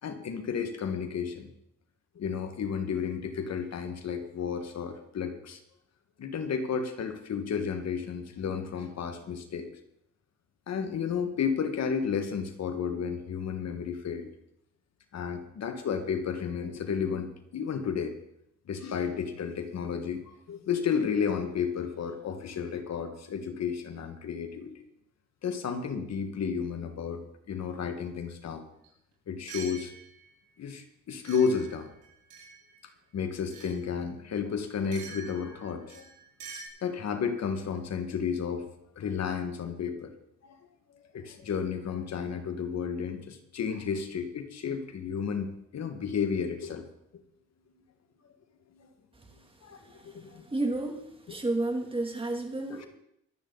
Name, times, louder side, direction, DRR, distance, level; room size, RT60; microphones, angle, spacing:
voice 1, 0.0-1.5 2.2-5.6 6.2-9.7 10.7-14.3 15.1-18.2 18.7-24.8 25.4-27.2 27.5-28.6 29.3-29.9 30.6-31.9 32.8-36.0 36.8-38.7 39.0-40.1 40.4-40.6 41.1-46.9 48.8-48.9 49.6-50.5 52.7-52.9, left 6 dB, 60° left, 7 dB, 1.8 m, -32 dB
sound 1, 28.8-28.9 29.5-30.3 31.2-32.8 33.5-33.8 34.9-36.7, right 5 dB, 75° right, 6.6 m, -46 dB
voice 2, 50.5-51.0 51.3-52.9, right 2 dB, 15° right, 3 dB, 2.8 m, -30 dB
23.5 x 8.9 x 4.1 m, 0.76 s
cardioid pair, 90°, 30 cm